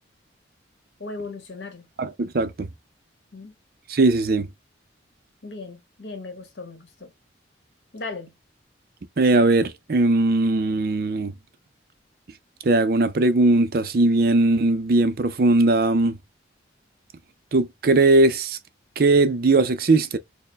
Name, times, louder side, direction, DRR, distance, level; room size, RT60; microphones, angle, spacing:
voice 1, 1.0-1.9 3.3-3.5 5.4-7.1 7.9-8.3, left 3 dB, 65° left, 1.3 m, -37 dB
voice 2, 2.0-2.7 3.9-4.5 9.2-11.3 12.6-16.2 17.5-18.6 19.0-20.2, right 2 dB, 50° right, 0.5 m, -19 dB
4.4 x 2.1 x 3.2 m
head